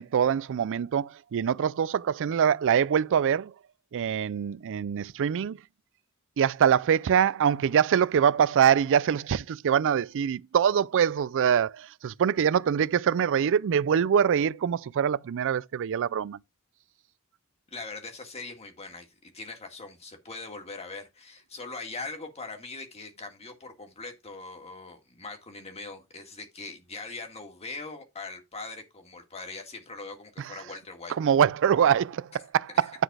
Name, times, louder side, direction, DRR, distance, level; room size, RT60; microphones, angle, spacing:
voice 1, 0.0-3.5 3.9-5.6 6.4-16.4 31.2-32.9, right 8 dB, 60° right, 0.4 m, -24 dB
voice 2, 17.7-31.1 32.8-32.9, left 3 dB, 30° left, 1.9 m, -41 dB
10.0 x 4.0 x 4.8 m
head